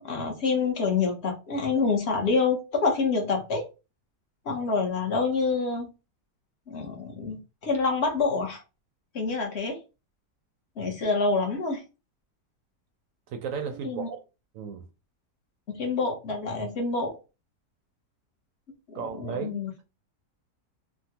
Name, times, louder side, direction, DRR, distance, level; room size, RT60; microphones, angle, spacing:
voice 1, 0.0-3.6 4.4-5.9 6.7-8.6 9.1-9.8 10.8-11.8 13.8-14.1 15.7-17.1 18.9-19.7, left 4 dB, 50° left, 1.0 m, -27 dB
voice 2, 13.3-14.2 14.5-14.9 18.9-19.6, right 6 dB, 70° right, 0.8 m, -34 dB
3.6 x 2.2 x 2.8 m
omnidirectional pair, 1.8 m